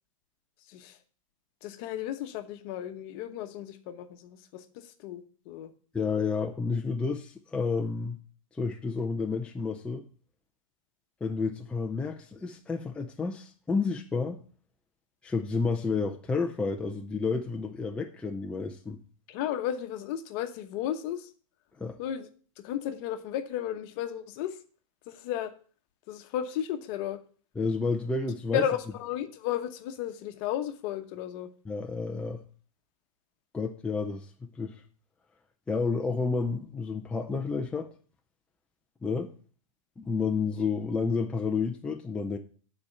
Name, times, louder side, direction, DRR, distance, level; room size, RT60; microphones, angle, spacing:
voice 1, 1.6-5.7 19.3-21.3 22.0-22.3 22.6-24.6 25.1-25.5 26.1-27.2 28.5-31.5, left 10 dB, 45° left, 1.0 m, -34 dB
voice 2, 5.9-8.2 8.5-10.1 11.2-14.4 15.2-19.0 21.8-22.0 27.6-28.6 31.6-32.4 33.5-34.8 35.7-37.9 39.0-39.3 40.0-42.4, left 4 dB, 5° left, 0.5 m, -30 dB
9.6 x 4.4 x 6.6 m
hypercardioid pair, 135°, 17 cm